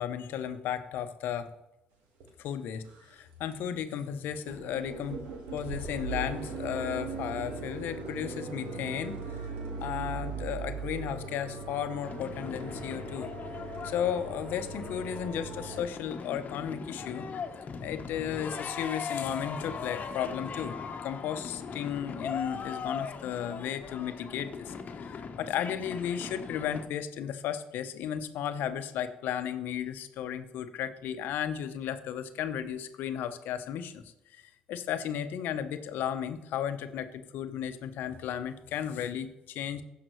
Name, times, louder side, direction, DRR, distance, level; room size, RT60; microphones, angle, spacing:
voice 1, 0.0-1.5 2.4-5.2 5.5-9.5 9.8-13.3 13.8-17.3 17.8-20.8 21.0-34.0 34.3-34.4 34.7-39.8, left 9 dB, 75° left, 10 dB, 0.8 m, -34 dB
sound 1, 2.2-2.3 2.8-3.2 3.5-3.6 3.9-4.0 4.3-15.8, right 4 dB, 85° right, 1.7 m, -39 dB
sound 2, 12.0-26.9, left 5 dB, 50° left, 1.1 m, -40 dB
16.0 x 5.8 x 3.2 m, 0.93 s
supercardioid pair, 60°, 3 cm